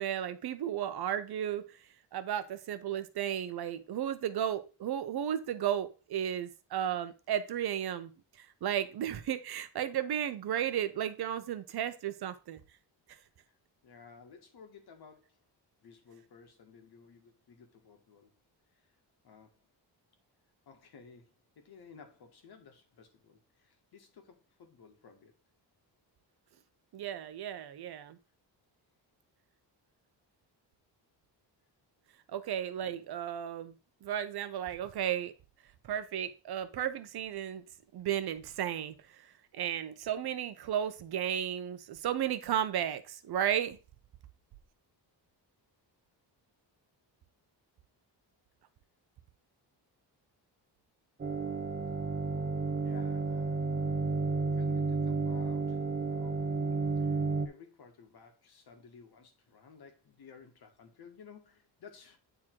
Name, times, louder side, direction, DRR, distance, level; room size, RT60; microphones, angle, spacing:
voice 1, 0.0-1.7 2.1-8.1 8.6-12.6 26.9-28.2 32.3-33.7 34.0-35.3 35.9-37.6 37.9-38.9 39.5-43.8, right 10 dB, 60° right, 0.9 m, -34 dB
voice 2, 13.8-15.4 15.8-18.3 19.2-19.6 20.7-25.3 52.8-53.9 54.5-62.2, left 6 dB, 60° left, 1.8 m, -55 dB
sound 1, 51.2-57.5, right 4 dB, 25° right, 0.8 m, -31 dB
9.2 x 3.8 x 4.6 m
wide cardioid pair, 175°, 43 cm